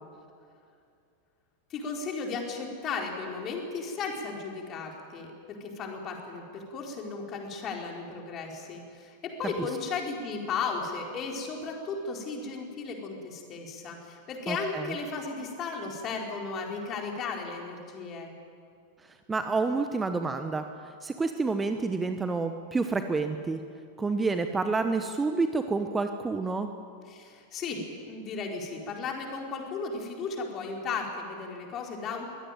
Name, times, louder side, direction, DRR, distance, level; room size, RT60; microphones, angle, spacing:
voice 1, 1.7-18.3 27.1-32.3, left 4 dB, 30° left, 1 dB, 4.3 m, -35 dB
voice 2, 14.5-14.9 19.3-23.6 24.0-26.7, right 3 dB, 15° right, 8 dB, 1.1 m, -29 dB
23.0 x 17.0 x 9.3 m, 2.4 s
figure-of-eight pair, 90°, 0 cm